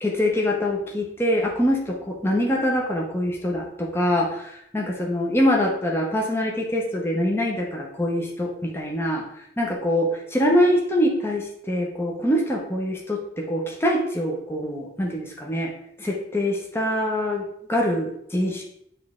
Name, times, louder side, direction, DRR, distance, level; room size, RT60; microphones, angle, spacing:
voice 1, 0.0-9.3 9.6-15.7 16.0-18.6, equal, 15° left, -1 dB, 0.8 m, -24 dB
8.3 x 3.2 x 3.7 m, 0.73 s
head